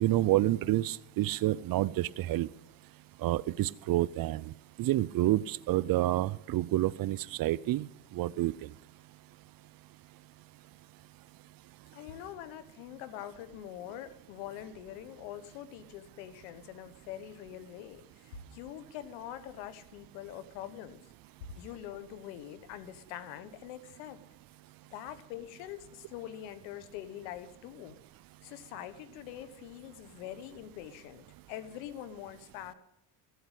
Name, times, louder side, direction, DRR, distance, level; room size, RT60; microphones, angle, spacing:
voice 1, 0.0-2.5 3.2-4.5 4.8-7.9 8.1-8.5, right 15 dB, 55° right, 19 dB, 0.6 m, -28 dB
voice 2, 11.9-21.1 21.5-24.2 24.9-28.0 28.4-32.7, left 11 dB, 90° left, 13 dB, 1.4 m, -44 dB
15.5 x 7.9 x 8.2 m, 0.84 s
supercardioid pair, 95°, 43 cm